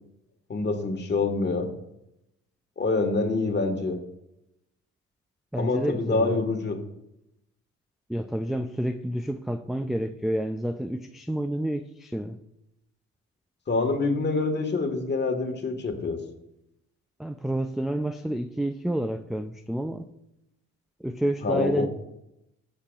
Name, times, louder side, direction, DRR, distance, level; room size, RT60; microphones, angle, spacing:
voice 1, 0.5-1.7 2.8-4.0 5.6-6.8 13.7-16.2 21.4-21.9, left 3 dB, 35° left, 1.6 m, -26 dB
voice 2, 5.5-6.4 8.1-12.4 17.2-20.1 21.0-21.9, right 1 dB, ahead, 0.3 m, -29 dB
15.5 x 6.8 x 2.4 m
cardioid pair, 90°, 30 cm